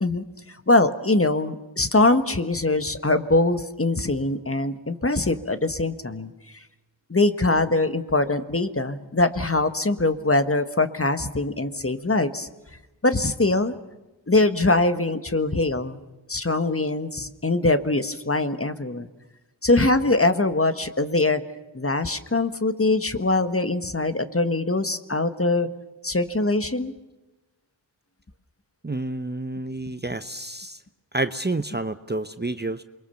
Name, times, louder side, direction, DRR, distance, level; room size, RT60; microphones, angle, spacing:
voice 1, 0.0-6.3 7.1-12.5 13.0-13.7 14.3-16.0 16.3-19.1 19.6-21.4 21.7-25.7 26.0-26.9, left 2 dB, 30° left, 10 dB, 1.7 m, -22 dB
voice 2, 28.8-30.8 31.1-32.8, right 2 dB, 20° right, 10 dB, 0.9 m, -29 dB
28.0 x 22.5 x 7.1 m, 1.0 s
cardioid pair, 45°, 45 cm